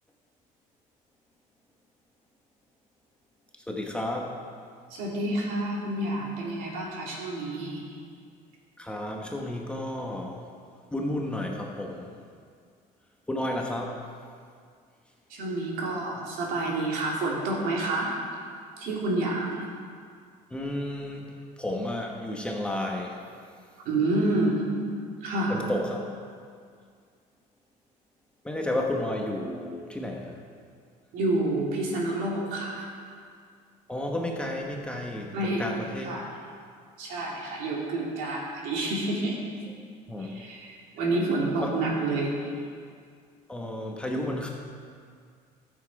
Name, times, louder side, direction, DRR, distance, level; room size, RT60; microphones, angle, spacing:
voice 1, 3.7-4.3 8.8-10.4 10.9-12.1 13.3-14.0 20.5-23.2 25.5-26.1 28.4-30.4 33.9-36.1 40.1-40.4 41.6-41.7 43.5-44.5, left 1 dB, 5° left, 0 dB, 1.0 m, -32 dB
voice 2, 4.9-7.8 15.3-18.1 18.8-19.6 23.8-24.6 25.2-25.6 31.1-32.9 35.3-35.6 36.0-36.3 37.0-39.4 40.2-42.3, right 2 dB, 70° right, -3 dB, 2.6 m, -28 dB
13.0 x 7.4 x 4.7 m, 2.2 s
cardioid pair, 145°, 15 cm